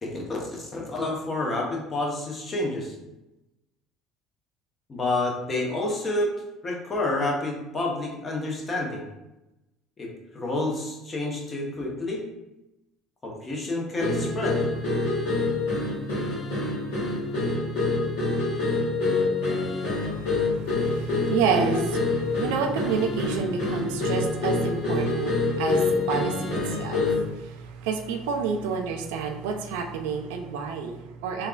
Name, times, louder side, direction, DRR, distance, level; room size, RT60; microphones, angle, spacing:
voice 1, 0.0-2.9 4.9-6.3 6.6-9.0 10.0-12.2 13.2-14.6, left 2 dB, 35° left, -1 dB, 0.9 m, -29 dB
sound 1, 14.0-27.3, left 3 dB, 75° left, 1.1 m, -26 dB
voice 2, 20.0-31.5, right 6 dB, 75° right, 4 dB, 0.3 m, -29 dB
3.4 x 2.3 x 2.3 m, 0.94 s
hypercardioid pair, 65°, 0 cm